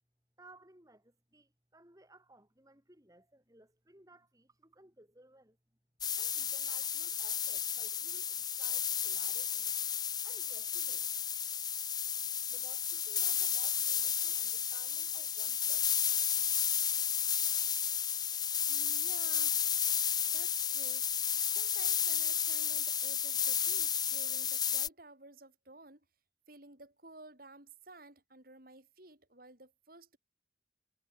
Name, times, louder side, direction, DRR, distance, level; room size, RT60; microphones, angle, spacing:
voice 1, 0.4-5.6 6.2-9.7 10.2-11.1 12.5-15.9, right 1 dB, 20° right, 6.7 m, -60 dB
sound 1, 6.0-24.9, left 8 dB, 25° left, 1.4 m, -32 dB
voice 2, 18.7-19.6 20.3-21.0 21.5-26.1 26.5-30.2, right 2 dB, 55° right, 5.9 m, -54 dB
head